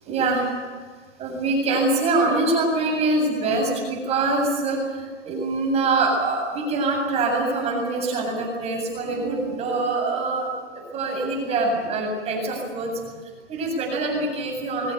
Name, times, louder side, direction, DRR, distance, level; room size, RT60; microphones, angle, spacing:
voice 1, 0.1-0.5 1.2-14.9, right 2 dB, 15° right, 1 dB, 7.9 m, -24 dB
23.0 x 19.5 x 9.7 m, 1.5 s
hypercardioid pair, 155°, 37 cm